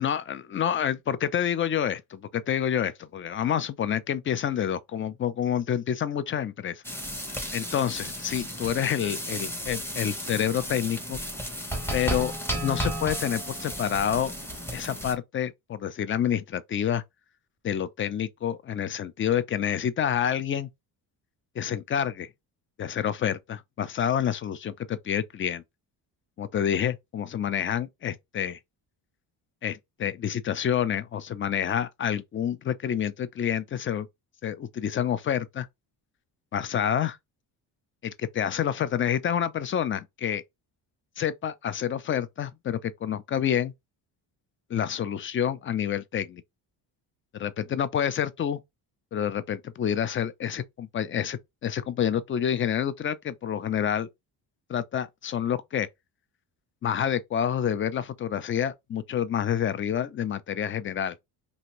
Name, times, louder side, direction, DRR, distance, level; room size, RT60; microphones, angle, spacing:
voice 1, 0.0-6.8 7.5-11.2 11.9-12.3 12.6-14.3 14.7-17.0 17.6-20.7 21.6-22.3 22.8-25.6 26.4-28.6 29.6-34.1 34.4-35.7 36.5-37.2 38.0-40.4 41.2-43.7 44.7-46.4 47.4-48.6 49.1-54.1 54.7-55.9 56.8-61.2, left 9 dB, 30° left, 0.4 m, -28 dB
sound 1, 6.8-15.1, equal, 5° left, 0.7 m, -33 dB
2.7 x 2.5 x 3.0 m
cardioid pair, 85°, 45 cm